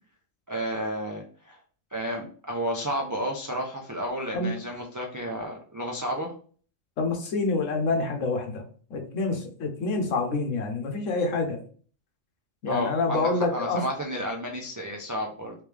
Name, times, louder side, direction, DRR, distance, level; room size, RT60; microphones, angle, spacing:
voice 1, 0.5-1.6 1.9-6.3 12.7-15.5, equal, 25° right, -1 dB, 0.4 m, -32 dB
voice 2, 7.0-8.6 8.9-11.6 12.6-13.8, left 3 dB, 80° left, 4 dB, 1.2 m, -27 dB
3.3 x 3.3 x 3.3 m, 0.43 s
omnidirectional pair, 1.3 m